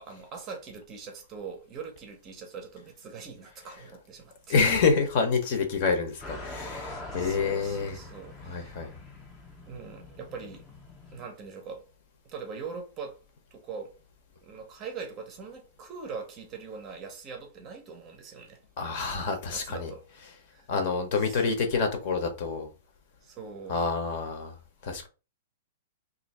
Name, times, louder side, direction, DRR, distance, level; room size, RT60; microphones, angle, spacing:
voice 1, 0.0-4.6 7.2-8.8 9.7-10.6 11.1-11.9 12.2-13.2 13.5-14.0 14.4-18.6 19.5-20.0 20.5-20.7 21.2-21.6 23.2-23.8, right 5 dB, 25° right, 0.7 m, -42 dB
voice 2, 4.5-8.0 8.4-8.9 18.8-19.9 20.7-22.7 23.7-24.5 24.8-25.1, left 5 dB, 40° left, 0.8 m, -27 dB
sound 1, 6.2-11.3, left 2 dB, 10° left, 0.7 m, -43 dB
2.7 x 2.6 x 4.1 m
hypercardioid pair, 165°, 0 cm